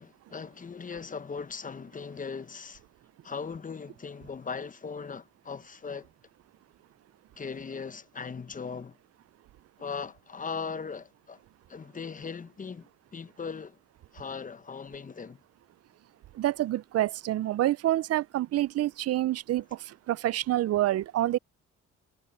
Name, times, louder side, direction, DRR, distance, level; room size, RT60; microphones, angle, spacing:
voice 1, 0.0-2.8 3.2-6.1 7.4-9.0 9.8-11.4 11.7-13.8 14.1-15.4, left 5 dB, 25° left, 0.9 m, -39 dB
voice 2, 16.4-21.4, right 14 dB, 55° right, 0.5 m, -27 dB
cardioid pair, 90°, 30 cm